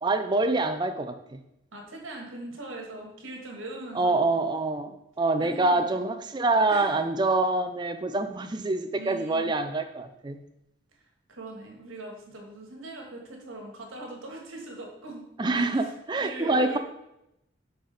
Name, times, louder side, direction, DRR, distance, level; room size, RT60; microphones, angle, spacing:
voice 1, 0.0-1.4 4.0-10.4 15.4-16.8, right 2 dB, 20° right, 8 dB, 0.4 m, -26 dB
voice 2, 1.7-4.3 5.4-6.0 6.7-7.0 8.9-9.5 10.9-15.9 16.2-16.8, right 2 dB, 90° right, 1 dB, 1.5 m, -41 dB
6.0 x 4.9 x 4.0 m, 0.84 s
head